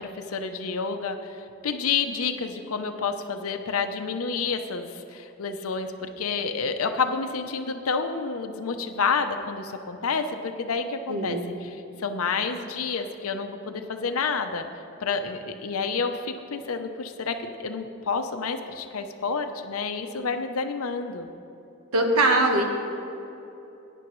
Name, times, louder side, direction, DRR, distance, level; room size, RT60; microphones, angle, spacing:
voice 1, 0.0-14.6 15.0-21.3, left 5 dB, 85° left, 7 dB, 0.6 m, -29 dB
voice 2, 11.1-11.4 21.9-22.6, right 2 dB, 90° right, 3 dB, 1.4 m, -21 dB
17.0 x 9.9 x 3.1 m, 3.0 s
head